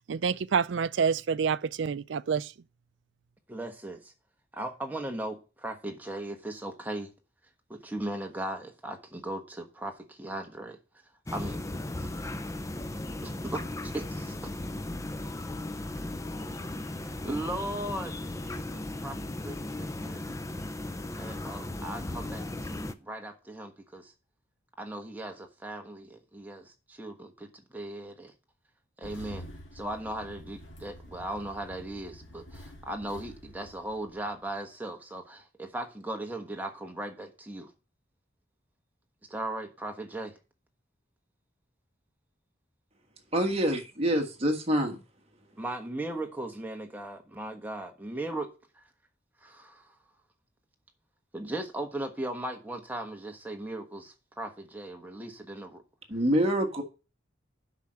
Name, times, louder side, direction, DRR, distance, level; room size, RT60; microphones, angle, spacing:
voice 1, 0.1-2.5, right 6 dB, 70° right, 0.4 m, -27 dB
voice 2, 3.5-4.1 4.5-7.1 7.7-10.8 11.3-11.6 12.0-12.1 13.2-14.3 16.9-20.2 21.2-24.1 24.8-28.3 29.0-29.4 29.7-37.7 39.3-40.4 45.6-48.5 48.7-48.8 49.4-49.9 51.3-55.8, right 1 dB, 10° right, 1.3 m, -38 dB
sound 1, 11.3-22.9, left 1 dB, 15° left, 0.5 m, -36 dB
Engine starting, 29.0-34.6, equal, 75° left, 2.5 m, -48 dB
voice 3, 43.3-45.0 56.1-56.8, right 1 dB, 30° right, 1.6 m, -26 dB
8.3 x 5.8 x 6.2 m
head